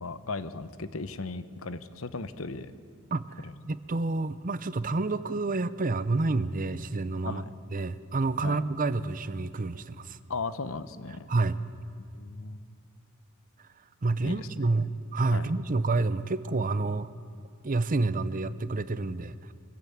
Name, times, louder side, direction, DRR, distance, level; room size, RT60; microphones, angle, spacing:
voice 1, 0.0-2.7 3.4-3.5 7.2-7.5 8.4-8.6 10.3-11.3 12.0-12.6 14.2-14.7 15.3-15.5, left 3 dB, 70° left, 13 dB, 0.9 m, -37 dB
voice 2, 3.1-7.4 7.7-10.2 11.3-11.6 14.0-17.1 17.6-19.5, right 3 dB, 40° right, 14 dB, 0.7 m, -29 dB
24.0 x 15.0 x 8.7 m, 2.4 s
head